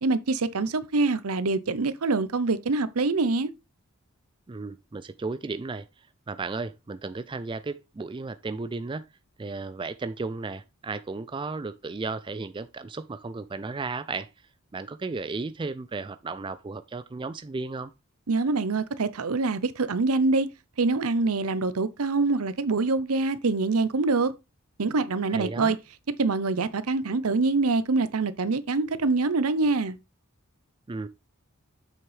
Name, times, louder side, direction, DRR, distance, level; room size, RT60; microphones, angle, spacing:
voice 1, 0.0-3.5 18.3-20.5 20.8-24.3 24.8-25.8 26.2-30.0, right 3 dB, 80° right, 0.7 m, -25 dB
voice 2, 4.5-9.1 9.4-14.3 14.7-17.9 25.3-25.8 30.9-31.1, right 3 dB, 20° right, 0.3 m, -34 dB
7.7 x 6.2 x 3.3 m
head